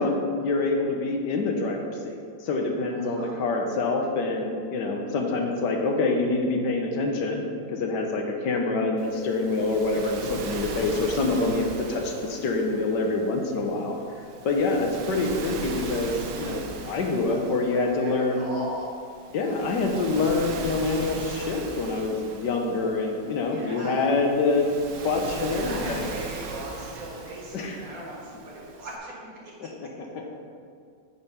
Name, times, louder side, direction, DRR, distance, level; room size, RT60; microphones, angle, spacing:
voice 1, 0.0-2.1 2.4-7.4 7.7-13.9 14.4-18.4 19.3-24.7 25.0-26.1 27.5-27.8, left 3 dB, 75° left, 2 dB, 1.5 m, -26 dB
voice 2, 2.9-3.4 17.2-18.9 23.5-24.1 25.3-29.7, right 1 dB, 55° right, -4 dB, 1.9 m, -39 dB
Waves surf, 9.0-29.0, right 4 dB, 75° right, 1.4 m, -39 dB
8.7 x 4.2 x 5.5 m, 2.2 s
omnidirectional pair, 1.9 m